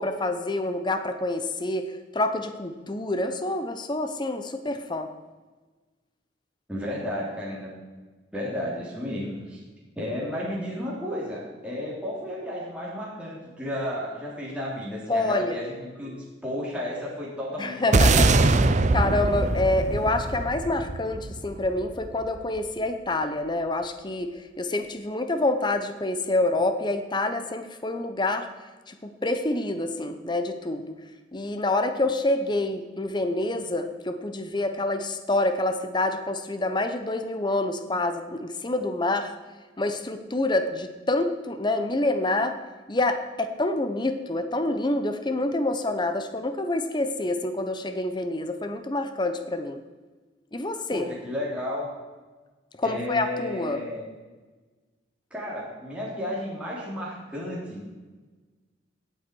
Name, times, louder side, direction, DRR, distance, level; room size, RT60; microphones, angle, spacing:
voice 1, 0.0-5.1 15.1-15.6 17.6-18.5 18.9-28.5 28.9-31.0 31.3-39.3 39.8-42.6 42.9-49.8 50.5-51.0 52.8-53.9, left 2 dB, 25° left, 8 dB, 0.8 m, -27 dB
voice 2, 6.7-7.7 8.3-9.6 9.9-18.7 50.9-51.9 52.8-54.0 55.3-57.8, left 1 dB, 5° right, -6 dB, 3.2 m, -33 dB
sound 1, 17.9-22.4, right 3 dB, 40° right, 0.6 m, -22 dB
17.0 x 8.0 x 4.6 m, 1.3 s
head